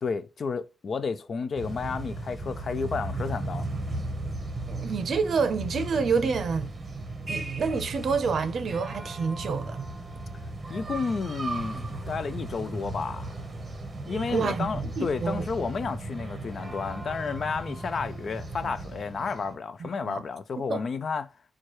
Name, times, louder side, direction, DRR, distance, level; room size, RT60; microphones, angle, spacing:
voice 1, 0.0-3.6 10.7-13.3 14.0-21.3, left 5 dB, 50° left, 0.3 m, -31 dB
sound 1, 1.6-19.6, right 2 dB, 25° right, 0.8 m, -36 dB
voice 2, 4.7-6.7 7.3-9.9 14.3-15.5 19.8-20.2 20.7-20.8, right 5 dB, 60° right, 0.5 m, -28 dB
4.5 x 2.3 x 2.9 m
wide cardioid pair, 145°, 0 cm